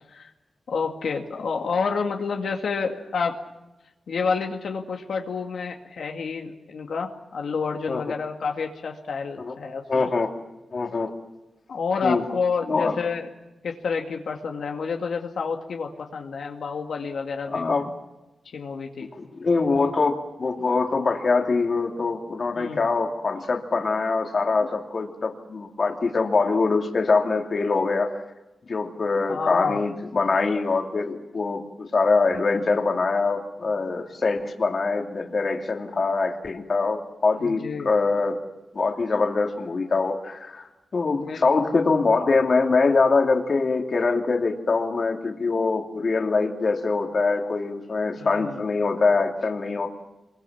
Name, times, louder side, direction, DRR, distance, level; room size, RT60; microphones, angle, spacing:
voice 1, 0.7-3.3 4.1-10.1 11.7-13.3 13.6-17.8 18.5-19.1 22.6-22.8 29.3-29.8 37.4-37.9 41.2-41.4 48.2-48.6, left 5 dB, 80° left, 2 dB, 2.2 m, -29 dB
voice 2, 9.9-10.3 10.7-11.1 12.0-12.2 12.7-12.9 17.5-17.9 19.1-28.2 28.7-38.4 38.7-49.9, left 4 dB, 45° left, 3 dB, 2.6 m, -23 dB
27.5 x 22.5 x 7.3 m, 1.0 s
wide cardioid pair, 145°, 0 cm